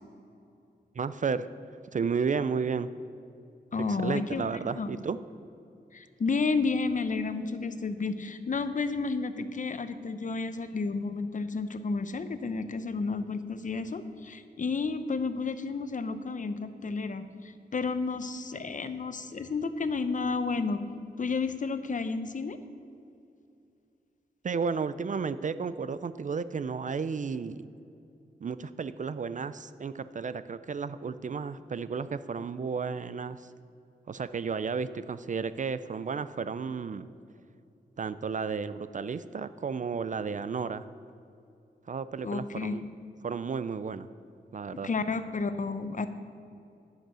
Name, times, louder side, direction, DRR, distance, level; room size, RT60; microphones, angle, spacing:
voice 1, 0.9-1.5 1.9-2.9 3.9-5.2 24.4-27.7 28.4-33.5 34.1-37.1 38.0-40.9 41.9-42.8 43.2-44.1 44.5-44.9, right 5 dB, 45° right, 14 dB, 0.4 m, -33 dB
voice 2, 3.7-4.5 4.8-5.0 5.9-20.8 21.2-22.6 42.2-42.8 44.7-46.1, left 4 dB, 50° left, 11 dB, 0.7 m, -31 dB
10.0 x 6.6 x 6.3 m, 2.6 s
cardioid pair, 65°, 18 cm